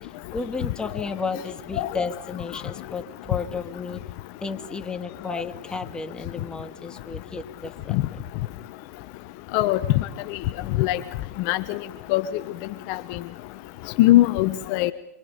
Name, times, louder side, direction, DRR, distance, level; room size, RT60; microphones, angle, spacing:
voice 1, 0.3-4.0 4.4-8.0, left 4 dB, 10° left, 2.1 m, -33 dB
voice 2, 11.5-11.8 12.1-12.2 12.9-13.0 14.0-14.9, left 16 dB, 45° left, 1.1 m, -20 dB
27.0 x 25.0 x 5.3 m
hypercardioid pair, 120°, 8 cm